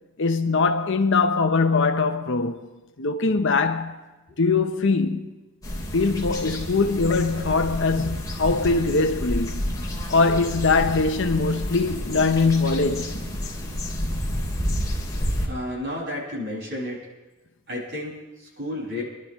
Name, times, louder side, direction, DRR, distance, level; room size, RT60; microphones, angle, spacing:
voice 1, 0.2-2.7 3.0-4.0 4.4-5.3 5.9-9.6 10.1-13.2, left 4 dB, 60° left, 0.8 m, -22 dB
sound 1, 5.6-15.5, equal, 20° left, 3.0 m, -30 dB
voice 2, 15.4-17.0 17.7-19.0, left 1 dB, 55° right, 6.3 m, -32 dB
27.5 x 12.0 x 3.2 m
head